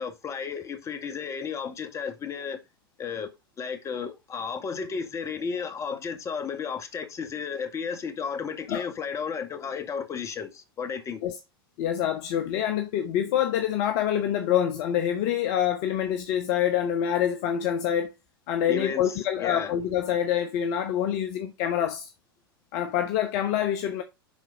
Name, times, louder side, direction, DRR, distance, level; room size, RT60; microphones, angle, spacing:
voice 1, 0.0-2.6 3.0-3.3 3.6-11.2 18.7-19.0 19.4-19.7, left 6 dB, 25° left, 2.0 m, -33 dB
voice 2, 11.8-18.1 18.5-22.1 22.7-24.0, left 10 dB, 45° left, 1.1 m, -26 dB
11.0 x 4.6 x 3.8 m
figure-of-eight pair, 90°, 13 cm